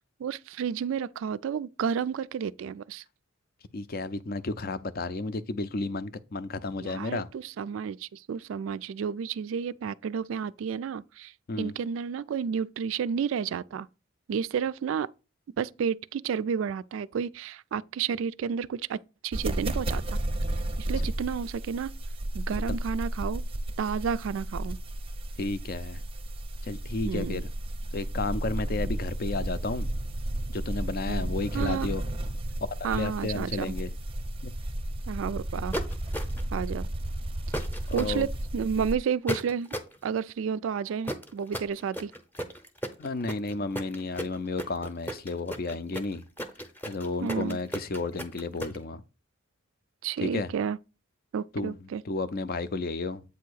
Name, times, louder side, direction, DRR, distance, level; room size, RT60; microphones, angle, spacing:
voice 1, 0.2-3.0 6.8-13.9 14.3-15.1 15.6-20.2 20.8-21.9 22.3-23.4 23.8-24.8 27.0-27.4 31.1-31.9 32.8-33.8 35.1-35.8 36.5-36.9 37.9-39.7 40.0-42.1 47.2-47.6 50.0-50.8 51.3-52.0, right 7 dB, 65° right, 0.3 m, -31 dB
voice 2, 3.7-7.3 11.5-11.7 21.0-21.1 22.5-22.8 25.4-26.0 26.6-27.4 27.9-29.9 30.5-32.0 32.6-33.9 34.4-34.5 37.9-38.3 43.0-46.2 46.9-49.0 50.2-50.5 51.5-51.8 52.1-53.2, left 3 dB, 45° left, 0.5 m, -32 dB
sound 1, 19.3-39.0, right 1 dB, 25° right, 0.6 m, -33 dB
sound 2, 35.7-36.5 37.5-38.1 39.3-40.0 41.1-48.8, equal, 10° left, 0.7 m, -34 dB
8.2 x 2.8 x 6.2 m
head